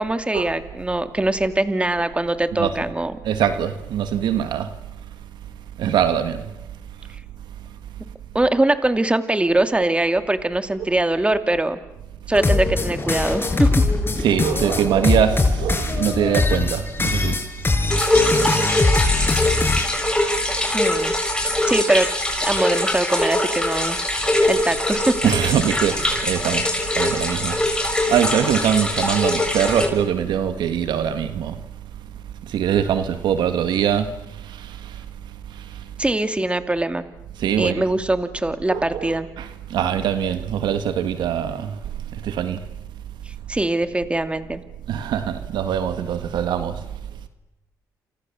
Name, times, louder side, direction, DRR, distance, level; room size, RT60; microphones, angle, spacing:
voice 1, 0.0-3.1 8.3-11.8 12.3-13.7 20.7-21.1 21.7-22.1 22.4-24.0 24.5-25.1 36.0-37.0 37.6-39.3 43.5-44.6, right 2 dB, 15° right, 2.5 m, -22 dB
voice 2, 3.2-4.7 5.8-6.4 14.2-17.4 25.2-26.7 27.0-27.6 28.1-31.5 32.5-34.1 34.6-34.8 37.4-37.8 38.7-41.8 42.2-42.6 44.9-46.8, right 9 dB, 75° right, 1.6 m, -22 dB
sound 1, 12.3-19.9, left 3 dB, 30° left, 5.4 m, -21 dB
sound 2, 17.9-29.9, left 1 dB, 10° left, 6.6 m, -22 dB
29.0 x 27.5 x 7.1 m
supercardioid pair, 60°, 8 cm